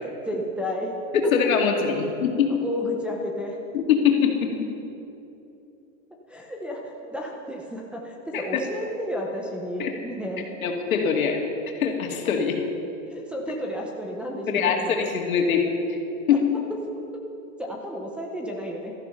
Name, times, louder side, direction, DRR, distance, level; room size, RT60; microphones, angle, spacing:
voice 1, 0.0-0.9 1.2-1.3 2.5-3.6 6.3-10.5 13.1-15.1 16.3-16.4 16.7-16.8 17.1-17.2 17.6-18.9, equal, 5° right, -2 dB, 0.5 m, -32 dB
voice 2, 1.3-2.5 3.7-4.7 8.3-8.6 9.8-9.9 10.6-11.4 11.8-12.6 14.5-15.8 16.3-16.4, left 7 dB, 80° left, 2 dB, 2.4 m, -23 dB
15.5 x 13.5 x 5.8 m, 2.8 s
supercardioid pair, 155°, 41 cm